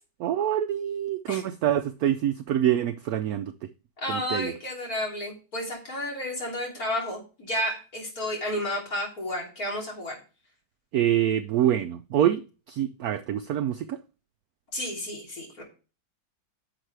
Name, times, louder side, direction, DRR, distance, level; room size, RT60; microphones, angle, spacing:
voice 1, 0.2-3.5 4.1-4.5 10.9-14.0, right 11 dB, 75° right, 0.8 m, -26 dB
voice 2, 4.0-10.2 14.7-15.6, left 1 dB, 50° left, 3.7 m, -31 dB
10.0 x 7.2 x 3.3 m
omnidirectional pair, 2.0 m